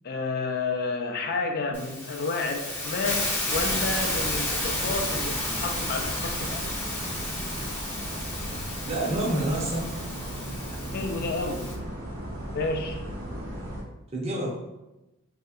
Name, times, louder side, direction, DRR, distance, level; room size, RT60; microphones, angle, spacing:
voice 1, 0.0-6.6 10.9-11.7 12.5-13.0, left 3 dB, 50° left, 3 dB, 0.4 m, -30 dB
Hiss, 1.7-11.7, left 1 dB, 10° left, 0.6 m, -32 dB
sound 1, 3.5-13.8, equal, 80° right, 1.1 m, -36 dB
voice 2, 8.9-9.8 14.1-14.5, right 1 dB, 30° right, -3 dB, 0.7 m, -27 dB
3.1 x 2.7 x 2.4 m, 0.97 s
head